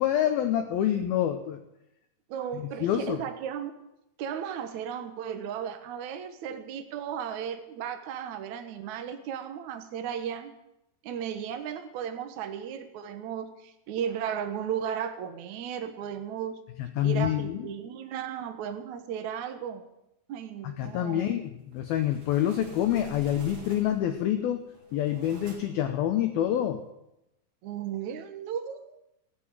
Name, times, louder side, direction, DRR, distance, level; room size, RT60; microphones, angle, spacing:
voice 1, 0.0-1.6 2.5-3.2 16.8-17.6 20.6-26.8, left 11 dB, 80° left, 7 dB, 2.2 m, -27 dB
voice 2, 2.3-3.7 4.2-10.5 11.0-16.6 17.0-19.9 20.3-21.3 27.6-28.8, right 8 dB, 80° right, 6 dB, 1.6 m, -35 dB
sound 1, 21.7-24.2 24.7-25.9, right 3 dB, 40° right, 1.8 m, -47 dB
15.5 x 10.5 x 7.4 m, 0.87 s
omnidirectional pair, 5.4 m